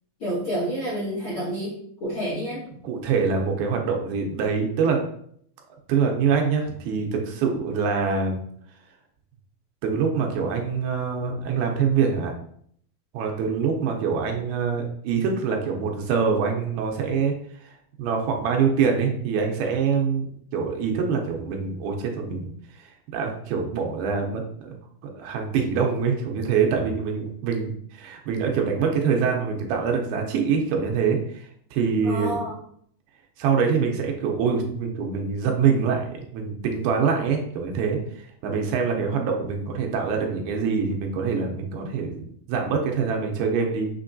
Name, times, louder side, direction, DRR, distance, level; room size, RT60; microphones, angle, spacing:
voice 1, 0.2-1.7 2.0-2.6 32.0-32.5, right 1 dB, 55° left, -9 dB, 1.4 m, -28 dB
voice 2, 2.8-5.0 5.9-8.4 9.8-12.3 13.1-17.3 17.6-20.3 20.5-22.5 22.8-24.8 25.2-32.4 33.4-43.9, right 6 dB, 80° right, 2 dB, 2.4 m, -25 dB
6.6 x 3.0 x 2.6 m, 0.65 s
omnidirectional pair, 4.5 m